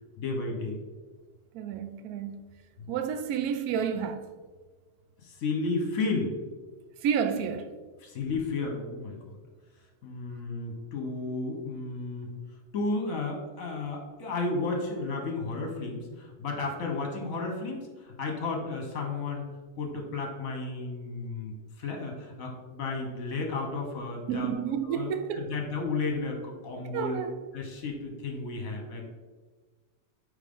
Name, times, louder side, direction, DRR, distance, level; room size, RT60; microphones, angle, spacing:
voice 1, 0.2-0.8 2.8-2.9 5.2-6.4 8.0-9.4 10.0-12.3 12.7-19.4 19.8-24.5 24.8-27.2 27.5-29.1, left 3 dB, 50° left, 1.5 m, -33 dB
voice 2, 1.5-2.4 2.9-4.2 7.0-7.7 24.3-25.4 26.9-27.3, right 7 dB, 70° right, 0.9 m, -30 dB
9.0 x 3.6 x 3.7 m
omnidirectional pair, 2.0 m